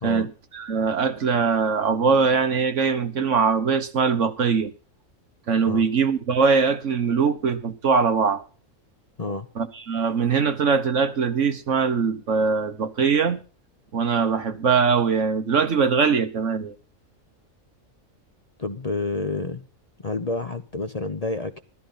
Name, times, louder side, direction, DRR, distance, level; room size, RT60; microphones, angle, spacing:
voice 1, 0.0-4.7 5.5-8.4 9.6-13.4 13.9-16.7, right 5 dB, 60° right, 1.6 m, -22 dB
voice 2, 18.6-19.7 20.0-21.6, left 3 dB, 35° left, 0.8 m, -29 dB
14.0 x 13.0 x 4.1 m
omnidirectional pair, 1.4 m